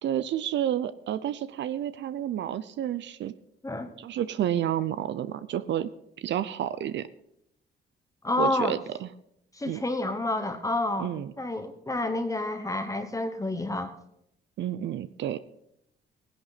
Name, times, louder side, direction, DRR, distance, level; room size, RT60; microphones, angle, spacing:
voice 1, 0.0-3.3 4.0-5.9 6.2-7.1 8.4-9.1 9.7-9.8 11.0-11.3 14.6-15.4, right 11 dB, 65° right, 14 dB, 0.6 m, -30 dB
voice 2, 8.2-8.8 9.5-13.9, left 2 dB, 15° left, 8 dB, 1.1 m, -29 dB
16.5 x 10.5 x 4.1 m, 0.77 s
cardioid pair, 90°, 20 cm